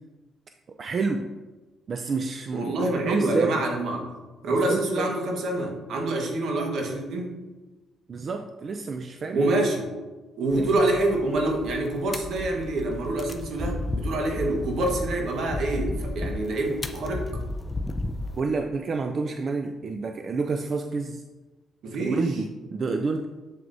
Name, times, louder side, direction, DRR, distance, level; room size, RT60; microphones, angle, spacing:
voice 1, 0.8-1.3 1.9-2.7 3.0-3.6 4.6-5.1 8.1-9.4 10.5-10.8 18.4-21.2 22.0-23.3, right 4 dB, 45° right, 6 dB, 0.4 m, -28 dB
voice 2, 2.5-4.0 4.4-7.3 9.3-9.9 10.4-17.2 21.8-22.2, right 2 dB, 70° right, 1 dB, 1.4 m, -26 dB
sound 1, 10.5-18.4, left 2 dB, 20° left, 0.6 m, -33 dB
7.7 x 7.3 x 2.7 m, 1.2 s
cardioid pair, 90°, 0 cm